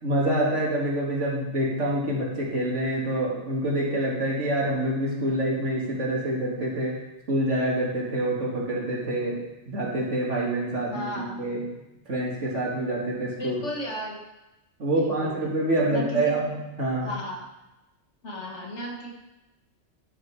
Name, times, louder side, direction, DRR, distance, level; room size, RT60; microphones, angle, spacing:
voice 1, 0.0-7.0 7.3-9.4 9.7-11.6 12.1-13.6 14.8-17.1, right 1 dB, 80° right, -4 dB, 2.5 m, -26 dB
voice 2, 10.9-11.5 13.4-14.2 14.9-16.4 17.0-17.5 18.2-19.1, equal, 75° left, 0 dB, 1.9 m, -35 dB
11.5 x 5.6 x 4.7 m, 0.99 s
omnidirectional pair, 1.2 m